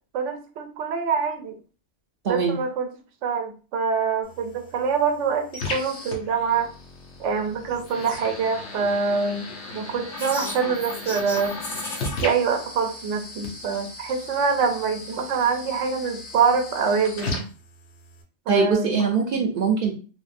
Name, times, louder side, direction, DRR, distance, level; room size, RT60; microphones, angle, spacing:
voice 1, 0.1-1.6 2.3-2.9 3.2-6.7 7.2-9.5 9.7-11.6 12.2-17.5 18.5-19.0, right 5 dB, 90° right, 5 dB, 0.9 m, -25 dB
voice 2, 2.2-2.6 18.5-19.9, right 5 dB, 60° right, 2 dB, 0.6 m, -22 dB
sound 1, 4.2-18.2, left 2 dB, 75° left, 1.0 m, -37 dB
sound 2, 10.1-12.3, left 2 dB, 50° left, 1.3 m, -34 dB
3.4 x 2.0 x 2.4 m, 0.37 s
omnidirectional pair, 1.2 m